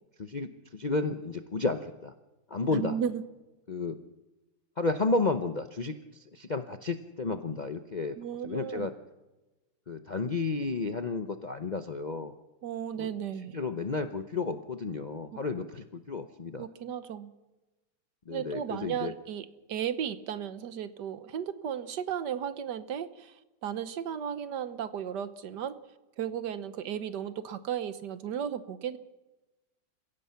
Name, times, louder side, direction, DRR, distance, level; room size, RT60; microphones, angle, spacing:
voice 1, 0.2-2.1 2.5-3.0 3.7-4.0 4.8-6.0 6.3-8.1 8.4-8.9 9.9-12.3 13.0-13.1 13.5-16.7 18.3-19.1, left 3 dB, 45° left, 7 dB, 0.5 m, -32 dB
voice 2, 2.7-3.2 8.2-8.9 12.6-13.6 16.6-17.3 18.3-25.8 26.2-29.0, right 9 dB, 70° right, 12 dB, 1.5 m, -35 dB
29.0 x 16.0 x 5.8 m, 1.1 s
omnidirectional pair, 1.9 m